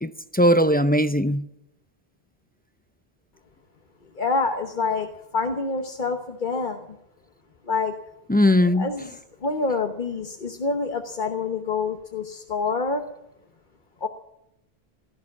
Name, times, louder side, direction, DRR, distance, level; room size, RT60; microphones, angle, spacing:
voice 1, 0.0-1.5 8.3-8.9, equal, 15° left, 0.3 m, -19 dB
voice 2, 4.2-5.1 5.3-7.0 7.7-7.9 8.6-13.0 14.0-14.1, left 4 dB, 50° left, 1.2 m, -27 dB
17.5 x 13.5 x 6.1 m
omnidirectional pair, 1.1 m